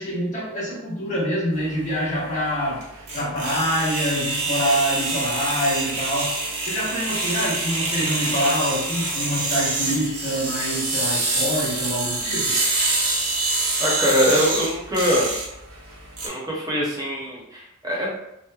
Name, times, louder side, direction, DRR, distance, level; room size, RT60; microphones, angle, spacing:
voice 1, 0.0-2.8 3.1-6.4 6.7-12.6, equal, 35° left, -9 dB, 1.0 m, -25 dB
sound 1, 1.6-16.3, right 2 dB, 75° right, 0.7 m, -26 dB
voice 2, 13.8-15.3 16.2-18.1, equal, 15° right, -3 dB, 0.6 m, -23 dB
3.1 x 2.0 x 2.3 m, 0.83 s
head